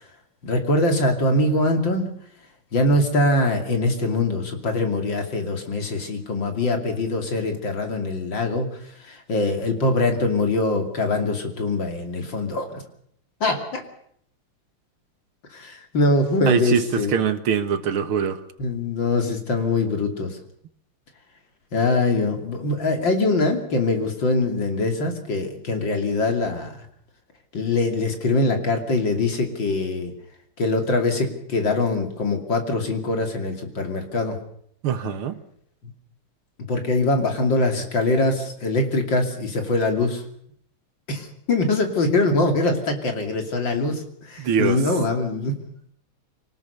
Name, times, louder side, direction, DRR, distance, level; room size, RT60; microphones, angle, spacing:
voice 1, 0.4-2.1 2.7-8.7 9.0-12.8 13.4-13.8 15.5-17.1 18.6-20.4 21.7-26.8 27.5-30.1 30.6-34.4 36.7-40.2 41.1-45.6, left 2 dB, 60° left, 5 dB, 3.5 m, -23 dB
voice 2, 16.5-18.4 34.8-35.4 44.4-44.8, right 7 dB, 80° right, 11 dB, 2.3 m, -23 dB
25.5 x 19.0 x 6.8 m, 0.67 s
omnidirectional pair, 2.3 m